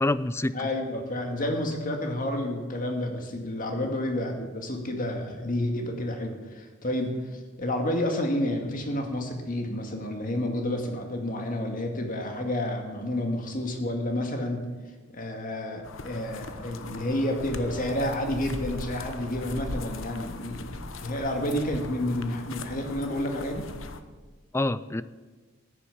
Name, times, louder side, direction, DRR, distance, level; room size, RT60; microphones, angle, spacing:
voice 1, 0.0-0.7 3.8-3.9 24.5-25.0, left 2 dB, 15° left, 16 dB, 0.4 m, -27 dB
voice 2, 0.5-14.6 15.1-23.6, left 1 dB, 45° left, 3 dB, 2.1 m, -30 dB
sound 1, 15.8-24.0, left 3 dB, 80° left, 1.0 m, -39 dB
14.5 x 10.0 x 7.2 m, 1.4 s
head